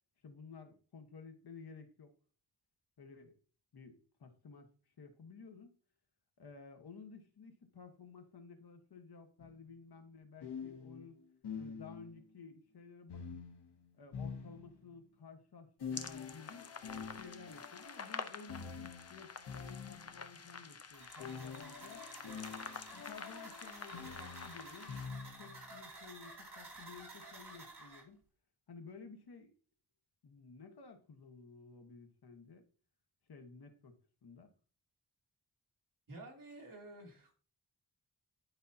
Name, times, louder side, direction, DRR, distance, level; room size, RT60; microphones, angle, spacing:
voice 1, 0.2-2.1 3.0-3.3 3.7-4.7 5.0-5.8 6.4-11.2 11.6-13.2 14.0-16.7 17.2-22.1 22.9-25.1 25.4-28.2 28.7-29.5 30.2-32.6 33.3-34.5, left 5 dB, 70° left, 6 dB, 1.3 m, -54 dB
sound 1, 9.4-9.5 10.4-12.2 13.1-15.0 15.8-20.3 21.2-25.7, left 6 dB, 90° left, 1.0 m, -47 dB
sound 2, 15.9-25.1, left 5 dB, 40° left, 0.7 m, -49 dB
sound 3, 20.9-28.0, right 2 dB, 75° right, 3.9 m, -52 dB
voice 2, 36.1-37.4, right 2 dB, 55° right, -1 dB, 2.7 m, -51 dB
11.0 x 5.4 x 2.8 m, 0.40 s
wide cardioid pair, 105°, 39 cm